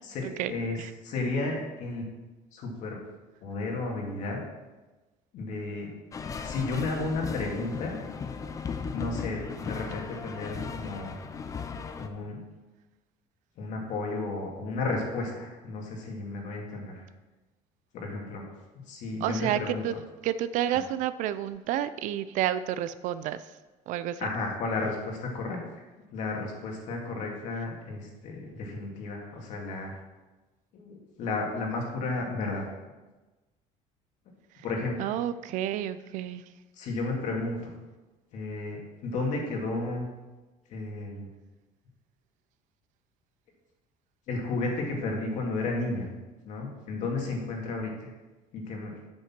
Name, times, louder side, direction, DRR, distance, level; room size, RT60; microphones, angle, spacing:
voice 1, 0.0-0.8 1.0-2.1 2.5-3.0 3.4-4.4 5.3-5.9 6.4-8.0 8.9-11.1 12.0-12.4 13.6-17.0 17.9-19.8 24.2-29.9 30.7-32.6 34.6-35.1 36.7-37.7 38.3-40.1 40.7-41.3 44.3-46.1 46.4-48.1 48.5-48.9, left 3 dB, 60° left, 0 dB, 2.2 m, -33 dB
sound 1, 6.1-12.1, left 5 dB, 25° left, 0.6 m, -36 dB
voice 2, 19.2-19.9 20.2-23.4 23.9-24.2 35.0-36.4, right 11 dB, 65° right, 14 dB, 0.5 m, -30 dB
8.2 x 6.6 x 6.0 m, 1.2 s
cardioid pair, 155°, 14 cm